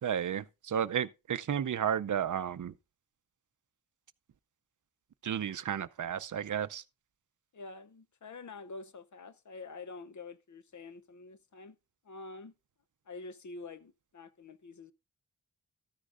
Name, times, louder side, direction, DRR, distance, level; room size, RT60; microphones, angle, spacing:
voice 1, 0.0-2.7 5.2-6.8, right 9 dB, 60° right, 0.5 m, -32 dB
voice 2, 7.5-11.8 12.0-12.5 13.1-14.9, left 3 dB, 55° left, 0.7 m, -47 dB
13.5 x 9.9 x 2.5 m
wide cardioid pair, 100°, 35 cm